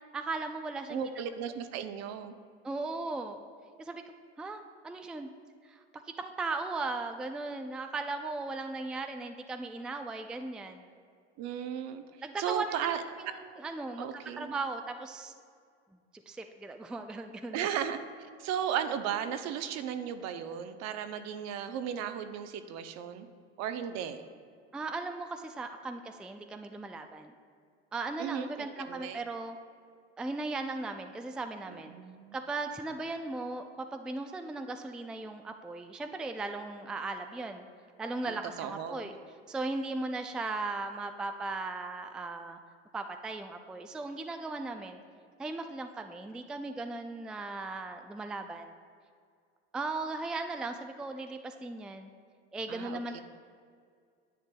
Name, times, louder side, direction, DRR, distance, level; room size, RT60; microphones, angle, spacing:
voice 1, 0.1-1.2 2.6-3.4 3.8-4.0 4.4-5.3 5.6-5.8 6.2-10.9 12.2-14.1 14.4-15.3 16.3-17.7 24.7-27.3 27.9-29.6 30.2-31.9 32.3-37.7 38.0-39.1 39.5-42.6 42.9-45.0 45.4-48.7 49.7-52.1 52.5-53.2, right 3 dB, 5° right, 6 dB, 0.3 m, -37 dB
voice 2, 0.9-2.3 11.4-12.0 12.4-13.0 14.0-14.6 17.5-18.0 18.4-23.3 23.6-24.2 28.2-29.2 31.7-32.4 38.2-39.0 52.7-53.2, right 9 dB, 55° right, 9 dB, 0.7 m, -35 dB
10.0 x 8.6 x 2.3 m, 2.1 s
hypercardioid pair, 80°, 32 cm